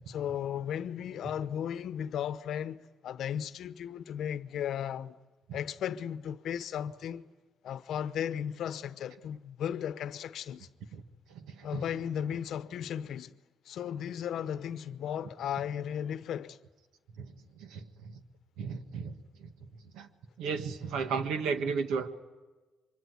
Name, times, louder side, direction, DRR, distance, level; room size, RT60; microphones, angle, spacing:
voice 1, 0.1-5.2 5.5-7.3 7.6-10.7 11.6-13.4 13.6-16.6, left 9 dB, 75° left, 0.9 m, -35 dB
voice 2, 18.6-19.2 19.9-20.1 20.4-22.1, right 5 dB, 90° right, 1.6 m, -33 dB
24.5 x 24.5 x 9.5 m
cardioid pair, 90°, 0 cm